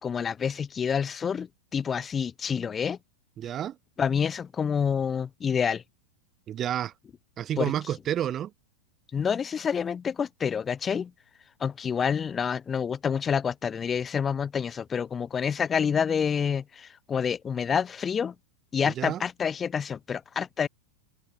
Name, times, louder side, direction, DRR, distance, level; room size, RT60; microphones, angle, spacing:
voice 1, 0.0-3.0 4.0-5.8 7.6-7.7 9.1-11.1 11.6-18.3 18.7-20.7, left 7 dB, 20° left, 2.9 m, -28 dB
voice 2, 3.4-3.8 6.5-6.9 7.4-8.5 18.8-19.2, right 10 dB, 30° right, 1.8 m, -30 dB
open air
figure-of-eight pair, 90°, 0 cm